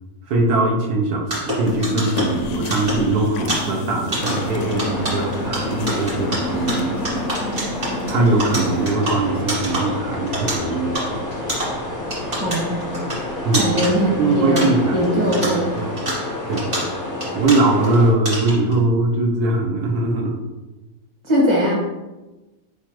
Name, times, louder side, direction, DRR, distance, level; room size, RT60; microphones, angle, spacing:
voice 1, 0.3-7.7 8.1-11.2 13.4-13.7 14.2-15.9 16.5-16.7 17.3-20.4, right 2 dB, 85° right, 0 dB, 1.2 m, -21 dB
sound 1, 1.2-15.1 15.3-18.0 18.3-18.7, right 1 dB, 40° right, 1.8 m, -28 dB
sound 2, 1.6-8.9, left 3 dB, 70° left, 0.8 m, -30 dB
sound 3, 4.1-18.1, left 2 dB, 25° left, 0.4 m, -29 dB
voice 2, 12.4-12.9 13.6-15.7 21.2-21.7, equal, 20° right, -4 dB, 1.1 m, -20 dB
4.6 x 3.6 x 2.9 m, 1.1 s
omnidirectional pair, 1.6 m